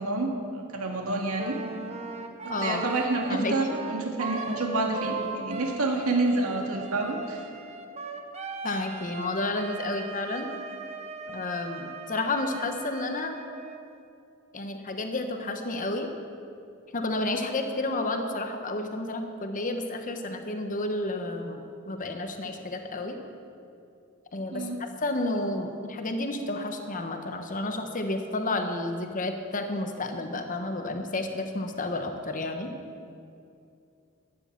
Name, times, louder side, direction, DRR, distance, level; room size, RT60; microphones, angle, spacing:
voice 1, 0.0-1.6 2.6-7.4 24.5-24.8, right 2 dB, 85° right, 1 dB, 2.1 m, -28 dB
Wind instrument woodwind instrument, 1.3-13.8, right 4 dB, 30° right, 0.9 m, -39 dB
voice 2, 2.5-2.8 3.3-3.5 8.6-10.5 11.3-13.4 14.5-16.1 16.9-21.6 21.9-23.2 24.3-24.7 25.0-32.7, left 2 dB, 40° left, 5 dB, 1.1 m, -31 dB
12.5 x 9.8 x 7.2 m, 2.6 s
head